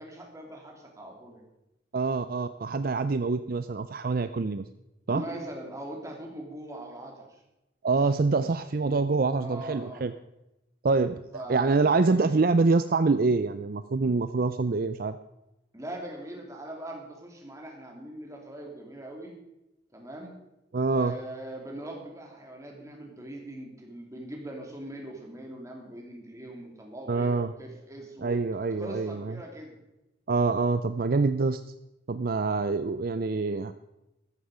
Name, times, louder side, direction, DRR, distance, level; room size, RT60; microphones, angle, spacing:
voice 1, 0.0-1.4 5.1-7.4 9.4-10.0 11.3-12.4 15.7-19.3 19.9-20.3 20.9-28.4 28.8-29.8, right 1 dB, 15° right, 0 dB, 3.1 m, -41 dB
voice 2, 1.9-4.6 5.1-5.2 7.8-10.1 10.8-11.2 11.5-15.2 20.7-21.2 27.1-27.5 28.2-29.4 30.3-31.6 32.1-33.7, right 3 dB, 50° right, 11 dB, 0.5 m, -25 dB
13.5 x 13.5 x 5.0 m, 0.94 s
head